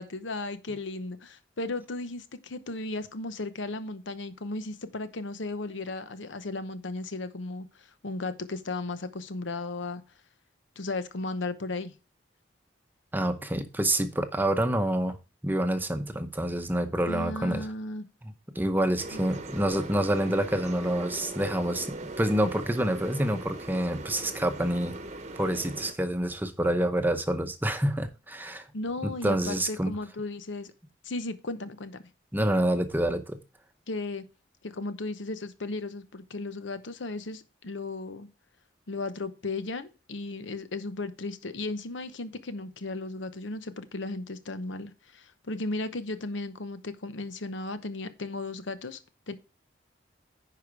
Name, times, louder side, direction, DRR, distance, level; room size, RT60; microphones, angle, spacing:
voice 1, 0.0-10.0 10.8-12.0 17.1-18.0 19.1-19.3 28.7-30.7 31.0-32.0 33.9-34.3 34.6-38.3 38.9-49.0 49.3-49.4, left 2 dB, 80° left, 0.9 m, -35 dB
voice 2, 13.1-15.2 15.4-17.6 18.2-24.9 25.4-28.7 29.0-29.9 32.3-33.4, right 1 dB, 10° right, 0.7 m, -27 dB
sound 1, 19.0-25.9, right 2 dB, 35° right, 0.9 m, -40 dB
10.0 x 4.9 x 4.7 m
head